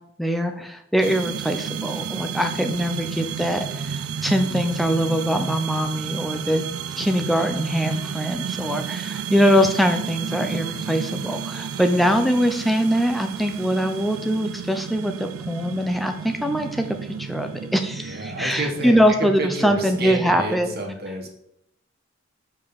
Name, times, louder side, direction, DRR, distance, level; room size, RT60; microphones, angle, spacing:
voice 1, 0.2-6.7 7.0-16.9 17.2-20.7, equal, ahead, 6 dB, 0.5 m, -22 dB
sound 1, 1.0-20.3, right 7 dB, 80° right, 0.4 m, -32 dB
voice 2, 18.0-21.3, right 1 dB, 45° right, 2 dB, 1.4 m, -29 dB
5.6 x 5.0 x 6.4 m, 0.77 s
head